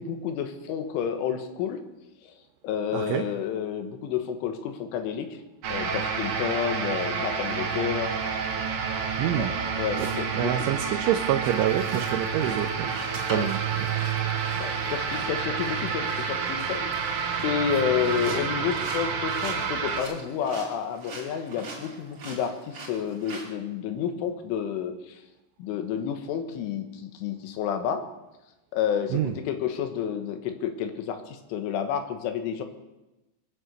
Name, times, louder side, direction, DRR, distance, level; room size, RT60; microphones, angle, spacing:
voice 1, 0.0-1.8 2.2-2.3 2.6-5.4 5.7-8.1 9.4-9.5 9.8-10.7 13.3-13.5 14.6-16.9 17.4-25.2 25.6-28.0 28.7-32.6, left 8 dB, 75° left, 7 dB, 3.8 m, -30 dB
voice 2, 2.9-3.3 9.2-9.5 10.0-12.9 13.3-13.9 29.1-29.3, right 11 dB, 80° right, 3 dB, 3.1 m, -27 dB
sound 1, 5.6-20.0, right 6 dB, 60° right, 2.2 m, -29 dB
sound 2, 11.4-23.5, right 2 dB, 35° right, 3.2 m, -43 dB
22.0 x 7.9 x 8.0 m, 0.99 s
omnidirectional pair, 5.8 m